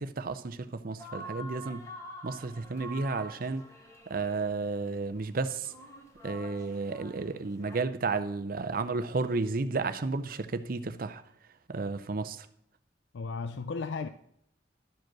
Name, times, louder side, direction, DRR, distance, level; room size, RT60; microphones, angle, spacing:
voice 1, 0.0-1.9 2.2-3.6 4.1-5.7 6.2-11.2 11.7-12.5, right 3 dB, 55° right, 0.6 m, -32 dB
sound 1, 1.0-7.8, equal, 20° left, 1.7 m, -47 dB
voice 2, 13.1-14.1, left 4 dB, 80° left, 0.4 m, -34 dB
12.0 x 5.1 x 6.1 m
head